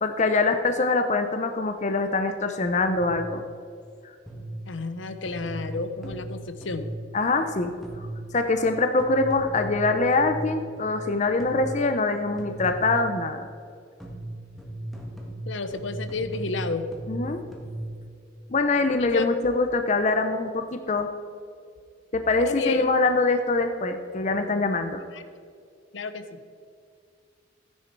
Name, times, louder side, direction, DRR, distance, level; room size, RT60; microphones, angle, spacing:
voice 1, 0.0-3.4 7.1-7.7 8.3-13.4 17.1-17.4 18.5-21.1 22.1-25.0, left 3 dB, 35° left, 7 dB, 0.6 m, -24 dB
sound 1, 3.0-3.4 4.3-4.7 5.3-7.1 7.8-8.3 9.0-11.1 11.4-11.9 12.4-13.2 14.0-18.0, right 1 dB, ahead, 1.6 m, -37 dB
voice 2, 4.7-6.9 15.5-16.9 19.0-19.3 22.4-22.9 25.1-25.2 25.9-26.4, left 3 dB, 70° left, 10 dB, 0.8 m, -31 dB
14.5 x 9.9 x 4.6 m, 2.4 s
head